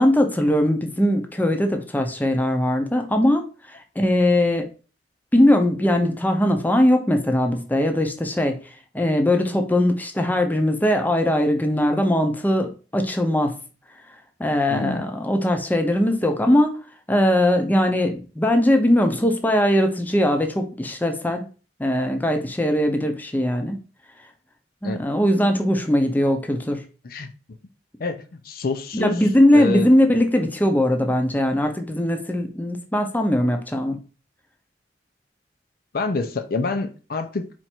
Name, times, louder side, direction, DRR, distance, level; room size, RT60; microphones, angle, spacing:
voice 1, 0.0-3.4 4.0-4.7 5.3-8.6 8.9-13.5 14.4-16.8 17.1-21.4 21.8-23.8 24.8-26.8 28.9-34.0, left 1 dB, 10° left, 0.6 m, -20 dB
voice 2, 14.7-15.1 24.8-25.0 27.0-27.3 28.0-29.2 29.5-29.9 35.9-37.5, left 4 dB, 55° left, 0.5 m, -27 dB
4.4 x 2.5 x 4.3 m
head